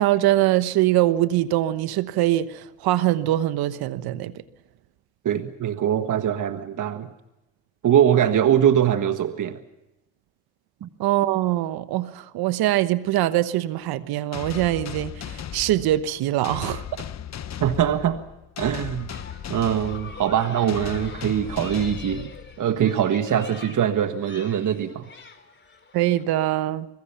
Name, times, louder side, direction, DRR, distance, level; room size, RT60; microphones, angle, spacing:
voice 1, 0.0-4.3 11.0-16.8 25.9-26.9, right 14 dB, 70° right, 1.1 m, -23 dB
voice 2, 5.3-7.1 7.8-9.6 10.8-10.9 17.6-18.2 18.6-19.1 19.5-22.3 22.6-25.1, right 9 dB, 50° right, 1.6 m, -22 dB
sound 1, 14.3-22.8, left 9 dB, 45° left, 1.2 m, -36 dB
sound 2, 19.1-26.2, left 3 dB, 30° left, 3.9 m, -44 dB
25.0 x 22.5 x 5.7 m
supercardioid pair, 65°, 38 cm